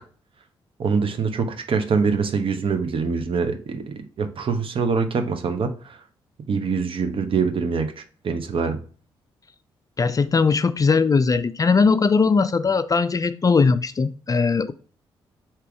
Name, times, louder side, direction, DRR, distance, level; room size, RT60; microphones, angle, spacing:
voice 1, 0.8-6.0 6.5-8.8, right 5 dB, 50° right, 0.8 m, -24 dB
voice 2, 10.0-14.7, left 4 dB, 30° left, 0.4 m, -19 dB
3.4 x 2.9 x 4.7 m
hypercardioid pair, 45°, 11 cm